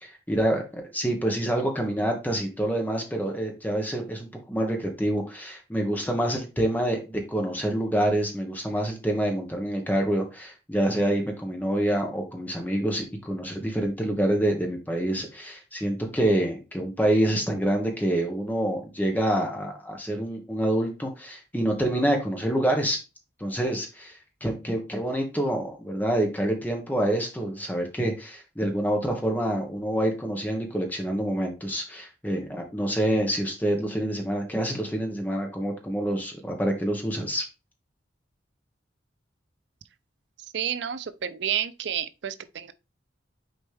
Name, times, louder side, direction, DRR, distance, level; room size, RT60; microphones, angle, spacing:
voice 1, 0.0-23.0 23.4-37.4, right 1 dB, 10° left, 1.4 m, -27 dB
voice 2, 40.5-42.7, right 9 dB, 80° right, 0.5 m, -30 dB
6.6 x 4.3 x 3.5 m
head